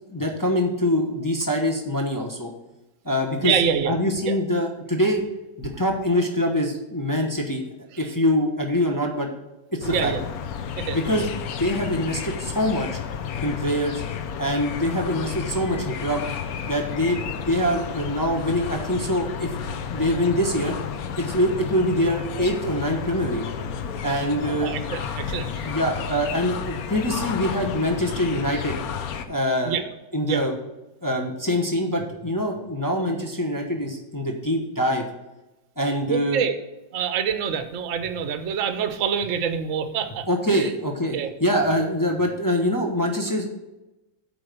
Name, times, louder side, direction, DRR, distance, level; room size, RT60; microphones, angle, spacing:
voice 1, 0.1-2.5 3.0-3.6 3.8-5.2 5.6-7.6 8.0-9.3 9.7-10.1 10.9-11.3 11.6-13.0 13.4-14.0 14.4-16.3 16.6-19.5 19.9-20.8 21.2-23.4 24.0-24.7 25.7-28.8 29.3-29.8 30.1-30.5 31.0-35.0 35.8-36.4 40.3-43.5, equal, 25° left, 1 dB, 0.4 m, -24 dB
voice 2, 3.4-3.9 4.3-4.4 9.9-10.2 10.8-11.0 24.6-25.7 29.7-29.8 30.2-30.4 36.1-36.5 36.9-40.3 40.5-40.7 41.1-41.3, right 7 dB, 55° right, 8 dB, 0.9 m, -26 dB
sound 1, 9.8-29.2, left 7 dB, 65° left, 0.9 m, -32 dB
8.6 x 4.8 x 6.7 m, 0.99 s
omnidirectional pair, 2.2 m